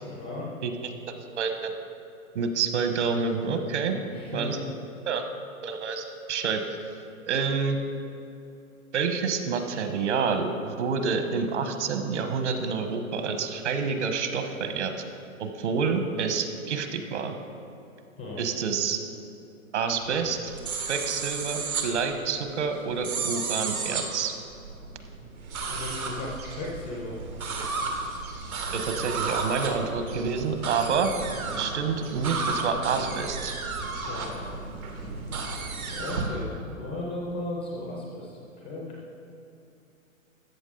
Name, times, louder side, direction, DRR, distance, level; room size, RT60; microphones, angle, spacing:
voice 1, 0.0-0.5 3.8-4.6 18.2-18.4 25.6-27.2 34.1-34.6 35.9-39.0, left 2 dB, 10° left, -3 dB, 0.4 m, -36 dB
voice 2, 1.4-1.7 2.3-3.9 4.3-4.6 5.1-5.2 5.6-6.6 7.3-7.8 8.9-14.9 15.4-17.4 18.4-19.0 19.7-20.5 20.9-24.3 28.7-31.1 31.6-33.6, right 5 dB, 55° right, 7 dB, 1.2 m, -28 dB
sound 1, 20.0-36.3, right 4 dB, 85° right, 1.8 m, -33 dB
13.5 x 8.1 x 3.8 m, 2.7 s
hypercardioid pair, 145°, 41 cm